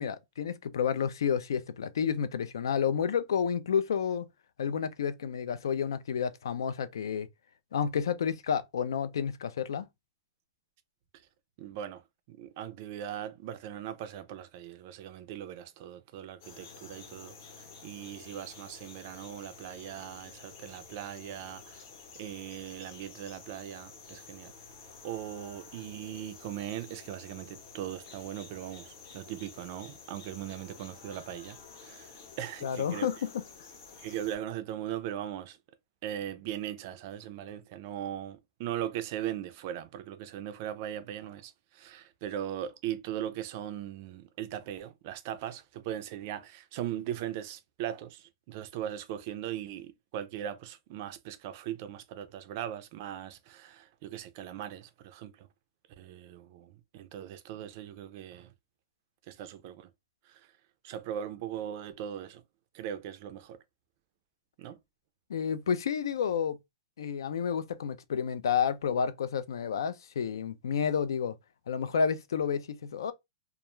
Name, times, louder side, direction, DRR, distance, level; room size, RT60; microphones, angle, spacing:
voice 1, 0.0-4.3 4.6-7.3 7.7-9.9 32.6-33.4 65.3-66.6 67.0-71.4 71.7-73.1, left 7 dB, 85° left, 0.4 m, -30 dB
voice 2, 11.6-12.0 12.3-21.8 22.2-24.5 25.0-33.1 34.0-35.6 36.0-55.5 56.0-58.5 59.3-59.9 60.3-60.4 60.8-62.4 62.7-63.6 64.6-64.8, right 11 dB, 35° right, 0.3 m, -39 dB
sound 1, 16.4-34.4, left 5 dB, 45° left, 0.8 m, -51 dB
2.3 x 2.2 x 2.9 m
hypercardioid pair, 170°, 2 cm